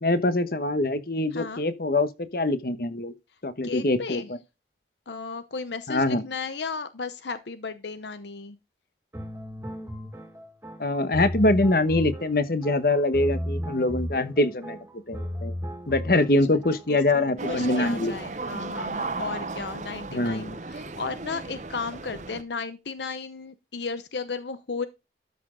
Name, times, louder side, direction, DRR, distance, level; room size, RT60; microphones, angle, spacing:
voice 1, 0.0-3.1 3.4-4.4 5.9-6.2 10.8-14.8 15.1-15.5 15.9-18.1 20.1-20.6, left 2 dB, 55° left, 1.1 m, -24 dB
voice 2, 1.3-1.6 3.6-4.3 5.1-8.6 16.2-16.3 16.5-16.6 16.9-24.9, left 4 dB, 80° left, 0.8 m, -35 dB
sound 1, 9.1-17.0, equal, 15° right, 2.0 m, -35 dB
sound 2, 17.4-22.4, right 3 dB, 40° right, 0.9 m, -35 dB
13.0 x 6.1 x 3.8 m
head